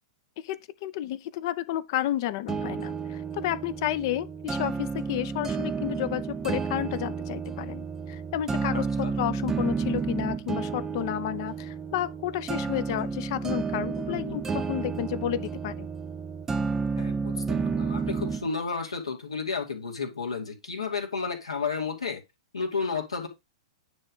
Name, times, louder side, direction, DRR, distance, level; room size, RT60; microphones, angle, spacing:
voice 1, 0.4-15.9, left 12 dB, 50° left, 0.7 m, -31 dB
sound 1, 2.5-18.5, right 5 dB, 15° right, 0.7 m, -31 dB
voice 2, 8.7-9.1 14.1-14.4 17.0-22.2 22.5-23.3, left 5 dB, 85° left, 2.4 m, -32 dB
9.5 x 3.4 x 5.4 m
figure-of-eight pair, 110°, 3 cm